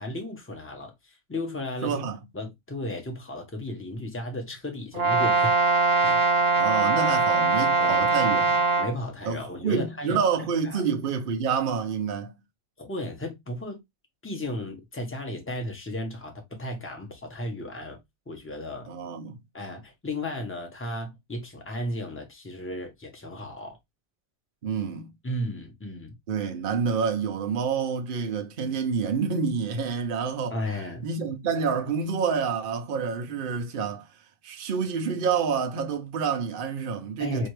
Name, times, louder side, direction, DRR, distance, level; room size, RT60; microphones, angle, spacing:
voice 1, 0.0-2.0 2.3-5.5 6.0-6.2 7.8-8.1 8.8-10.2 10.6-10.8 12.8-13.8 14.2-18.0 18.3-18.9 19.5-23.8 25.2-26.2 30.5-31.1 37.2-37.5, left 1 dB, 10° left, 0.7 m, -34 dB
voice 2, 1.8-2.2 6.6-8.6 9.2-12.3 18.9-19.4 24.6-25.1 26.3-30.6 31.0-34.1 34.4-37.5, right 6 dB, 85° right, 0.4 m, -28 dB
Brass instrument, 4.9-8.9, right 3 dB, 40° right, 1.1 m, -22 dB
4.4 x 2.8 x 3.1 m
omnidirectional pair, 1.9 m